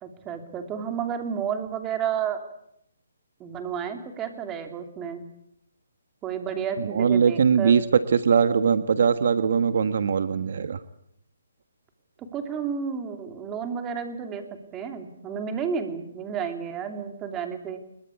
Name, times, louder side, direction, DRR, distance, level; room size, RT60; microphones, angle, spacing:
voice 1, 0.0-2.4 3.4-5.3 6.2-7.8 12.2-14.4 14.7-17.8, right 7 dB, 15° right, 6 dB, 2.9 m, -31 dB
voice 2, 6.8-7.8 8.1-10.8, right 6 dB, 55° right, 11 dB, 1.4 m, -21 dB
24.5 x 22.0 x 8.4 m, 0.73 s
hypercardioid pair, 165°, 0 cm